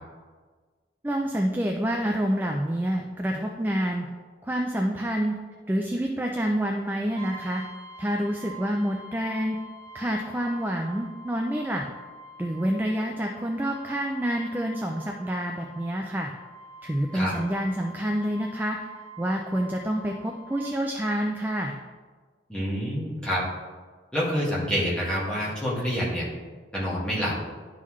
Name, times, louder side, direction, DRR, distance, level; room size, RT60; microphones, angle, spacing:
voice 1, 1.0-4.1 4.4-5.4 5.7-7.6 8.0-9.6 9.9-11.8 12.4-16.3 16.8-18.8 19.2-21.7, equal, 10° right, 2 dB, 0.3 m, -27 dB
Brass instrument, 7.2-20.8, right 2 dB, 30° right, 1.6 m, -46 dB
voice 2, 22.5-23.4 24.1-26.3 26.7-27.3, equal, 5° left, -8 dB, 1.8 m, -27 dB
11.0 x 3.8 x 3.1 m, 1.5 s
head